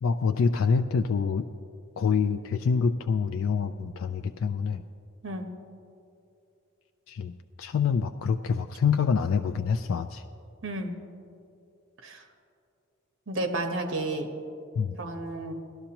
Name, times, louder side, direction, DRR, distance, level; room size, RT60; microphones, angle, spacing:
voice 1, 0.0-1.5 2.0-4.8 7.1-10.2 14.8-15.0, left 5 dB, 65° left, 8 dB, 0.3 m, -26 dB
voice 2, 10.6-10.9 12.0-12.2 13.3-14.3 15.0-15.5, right 2 dB, 60° right, 5 dB, 1.1 m, -31 dB
17.5 x 12.5 x 2.9 m, 2.7 s
head